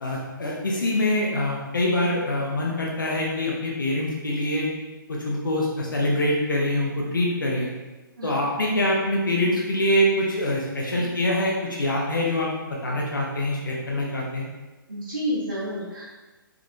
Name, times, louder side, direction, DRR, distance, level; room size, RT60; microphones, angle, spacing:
voice 1, 0.0-4.7 5.1-7.7 8.2-12.6 12.8-14.4, left 1 dB, 65° left, -2 dB, 0.7 m, -24 dB
voice 2, 14.9-16.1, equal, 70° right, -9 dB, 1.1 m, -30 dB
3.5 x 3.4 x 2.3 m, 1.1 s
figure-of-eight pair, 130°, 12 cm